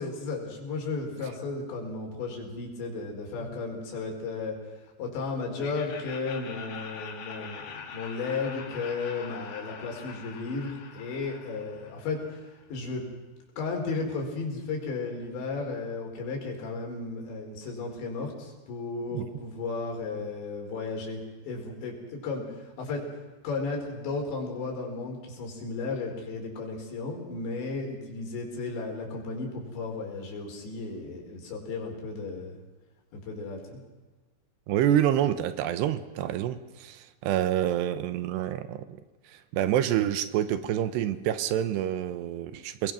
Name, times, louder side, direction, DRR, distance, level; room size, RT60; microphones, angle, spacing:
voice 1, 0.0-4.6 5.0-12.4 12.7-13.0 13.6-23.0 23.4-32.6 33.1-33.8, left 3 dB, 85° left, 1 dB, 6.7 m, -34 dB
Laughter, 5.6-12.5, left 6 dB, 50° left, 2.7 m, -43 dB
voice 2, 34.7-38.9 39.3-42.9, right 11 dB, 80° right, 12 dB, 3.1 m, -27 dB
28.5 x 21.0 x 6.3 m, 1.2 s
omnidirectional pair, 5.0 m